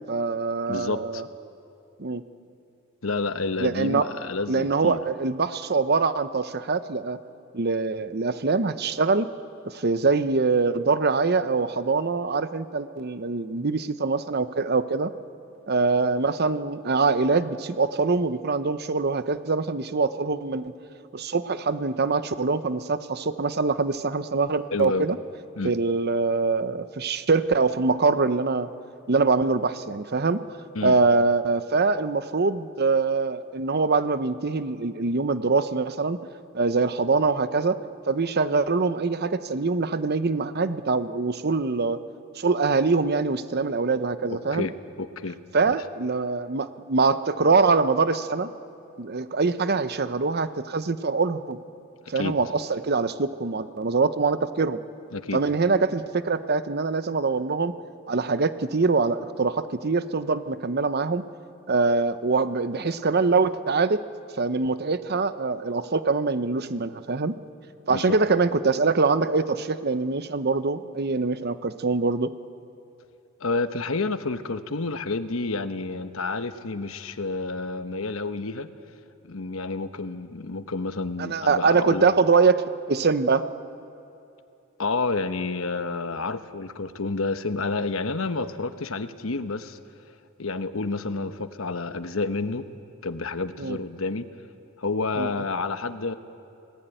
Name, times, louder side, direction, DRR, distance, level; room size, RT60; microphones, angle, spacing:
voice 1, 0.1-1.2 2.0-2.2 3.6-4.1 4.5-7.2 7.5-9.3 9.6-15.1 15.7-20.7 21.1-25.2 25.6-28.7 29.1-30.4 30.8-36.2 36.5-37.8 38.1-42.0 42.4-44.7 45.5-48.5 49.0-51.6 52.1-54.8 55.3-57.7 58.1-61.2 61.7-64.0 64.4-67.4 67.9-72.3 81.2-82.6 82.9-83.4 93.6-93.8 95.2-95.3, right 4 dB, 50° right, 12 dB, 0.9 m, -24 dB
voice 2, 0.7-1.2 3.0-5.0 24.7-25.1 25.6-25.7 30.7-30.9 44.3-44.7 45.0-45.4 45.7-45.8 52.1-52.4 55.1-55.4 67.9-68.2 73.4-78.7 79.2-82.1 84.8-89.8 90.4-92.7 93.0-94.3 94.8-96.2, left 3 dB, 85° left, 10 dB, 1.1 m, -29 dB
28.5 x 19.0 x 9.1 m, 2.7 s
head